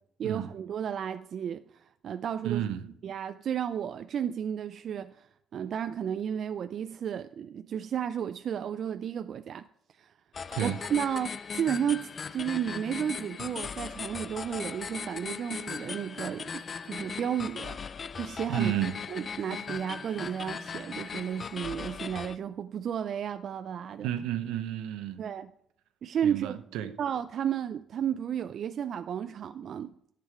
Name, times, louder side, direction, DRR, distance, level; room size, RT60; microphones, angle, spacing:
voice 1, 0.2-2.6 3.0-9.7 10.0-10.1 10.6-17.8 18.1-18.7 19.1-24.1 25.2-25.5 26.0-26.5 27.0-29.9, right 9 dB, 60° right, 0.4 m, -33 dB
voice 2, 2.4-2.9 10.5-10.8 18.5-19.0 24.0-25.2 26.2-27.0, right 11 dB, 85° right, 0.7 m, -31 dB
sound 1, 10.3-22.4, left 6 dB, 45° left, 0.5 m, -38 dB
10.5 x 7.5 x 4.7 m
supercardioid pair, 65°, 0 cm